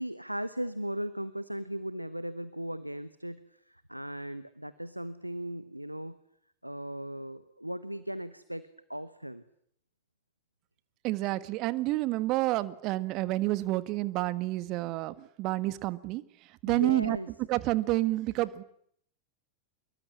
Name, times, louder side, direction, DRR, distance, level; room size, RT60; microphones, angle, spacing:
voice 1, 0.0-6.2 6.6-9.4 16.7-17.3, right 1 dB, 90° right, 15 dB, 1.1 m, -37 dB
voice 2, 11.0-16.2 16.6-17.2 17.5-18.6, right 18 dB, 40° right, 16 dB, 1.4 m, -29 dB
25.0 x 22.0 x 9.8 m, 0.69 s
figure-of-eight pair, 90°, 0 cm